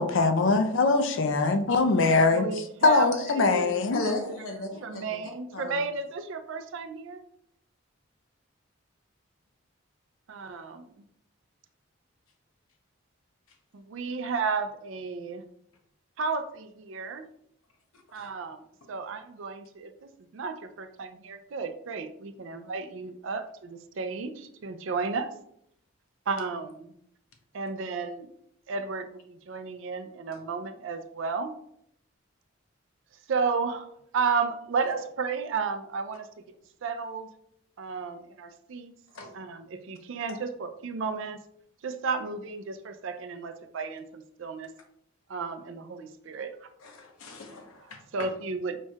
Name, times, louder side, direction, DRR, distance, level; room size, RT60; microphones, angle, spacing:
voice 1, 0.0-2.4 2.8-4.0, left 3 dB, 65° left, 0.5 m, -22 dB
voice 2, 2.2-4.2 4.8-7.2 10.3-11.0 13.7-15.4 16.2-17.2 18.1-25.3 26.3-26.9 27.5-28.3 28.7-31.5 33.3-36.3 36.8-37.3 37.8-38.9 39.3-41.4 41.8-44.7 45.3-46.7 48.1-48.8, right 4 dB, 65° right, 0.4 m, -33 dB
voice 3, 3.9-5.8 18.1-18.3 18.8-18.9 30.3-30.4 39.1-39.3 46.8-48.3, left 2 dB, 85° left, 0.9 m, -36 dB
4.5 x 4.4 x 2.3 m
head